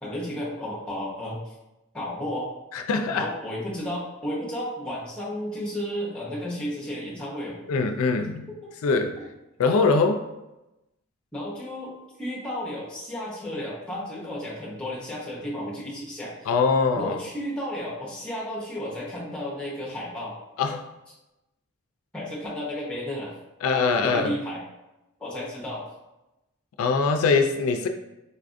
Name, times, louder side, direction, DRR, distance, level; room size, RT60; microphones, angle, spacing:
voice 1, 0.0-1.5 1.9-2.5 3.1-7.6 11.3-11.9 12.2-16.5 17.0-20.4 22.1-23.3 24.0-24.6 25.2-25.9, equal, 5° left, -5 dB, 0.7 m, -33 dB
voice 2, 2.7-3.3 7.7-8.5 8.8-9.2 9.6-10.2 16.5-17.2 20.6-20.9 23.6-24.3 26.8-27.9, left 4 dB, 85° left, 6 dB, 0.3 m, -22 dB
4.1 x 2.5 x 2.4 m, 0.97 s
head